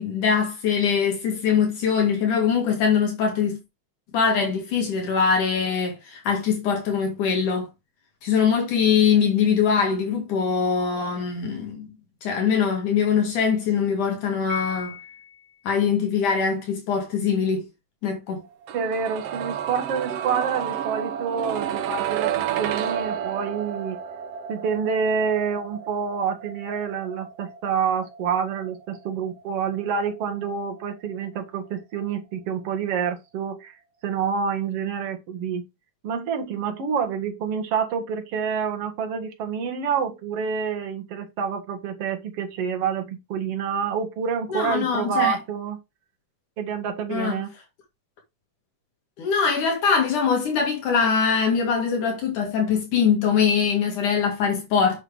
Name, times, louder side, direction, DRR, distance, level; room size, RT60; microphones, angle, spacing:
voice 1, 0.0-3.6 4.1-7.7 8.2-11.9 12.2-15.0 15.6-17.7 18.0-18.4 44.5-45.4 47.1-47.4 49.2-55.0, left 6 dB, 70° left, 3.4 m, -22 dB
Piano, 14.5-15.6, left 10 dB, 25° left, 4.0 m, -37 dB
voice 2, 18.7-24.0 24.5-33.7 34.0-35.6 36.0-45.8 46.6-47.5, right 6 dB, 50° right, 2.4 m, -27 dB
sound 1, 18.7-30.5 30.8-30.9, right 9 dB, 70° right, 1.4 m, -31 dB
7.9 x 6.4 x 3.5 m
omnidirectional pair, 3.8 m